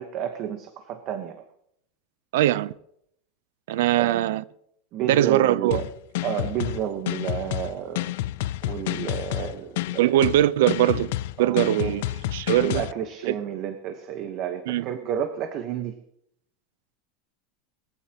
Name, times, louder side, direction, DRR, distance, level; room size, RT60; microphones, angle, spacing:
voice 1, 0.0-1.4 4.0-4.3 4.9-5.9 6.2-8.1 8.6-10.2 11.4-12.0 12.5-16.0, right 9 dB, 35° right, 1.1 m, -31 dB
voice 2, 2.3-2.7 3.7-4.4 5.1-5.8 10.0-12.0 12.3-12.8 13.3-13.4 14.7-14.8, right 13 dB, 75° right, 0.6 m, -21 dB
sound 1, 5.7-12.9, left 15 dB, 65° left, 0.5 m, -29 dB
20.5 x 15.0 x 2.9 m
supercardioid pair, 175°, 0 cm